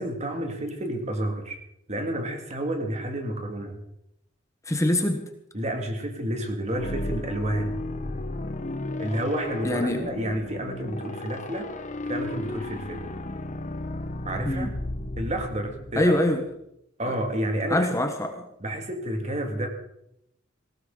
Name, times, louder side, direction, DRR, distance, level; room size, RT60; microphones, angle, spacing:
voice 1, 0.0-1.6 1.9-3.8 5.5-7.8 9.0-11.7 12.0-13.1 14.2-14.7 15.2-16.1 17.0-18.0 18.6-19.7, right 1 dB, 35° right, 4 dB, 2.3 m, -30 dB
voice 2, 4.7-5.3 9.6-10.1 14.5-14.7 16.0-16.4 17.1-17.2 17.7-18.4, left 1 dB, 15° left, 6 dB, 1.2 m, -24 dB
sound 1, 6.7-16.4, left 1 dB, 40° left, 1.1 m, -34 dB
19.0 x 16.5 x 3.9 m, 0.79 s
head